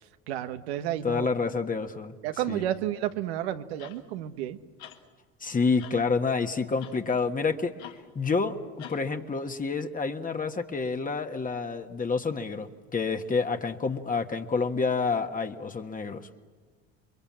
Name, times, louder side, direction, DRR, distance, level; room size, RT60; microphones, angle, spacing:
voice 1, 0.3-1.3 2.2-4.6, right 12 dB, 85° right, 9 dB, 1.3 m, -31 dB
voice 2, 1.0-2.1 2.5-2.6 5.4-7.7 8.1-8.6 8.9-16.3, left 4 dB, 25° left, 5 dB, 1.5 m, -28 dB
sound 1, 3.8-4.0 4.8-5.0 5.8-6.0 6.8-7.0 7.8-8.0 8.8-9.0 9.8-9.9, left 11 dB, 85° left, 2.0 m, -45 dB
29.0 x 22.5 x 7.5 m, 1.5 s
supercardioid pair, 80°, 31 cm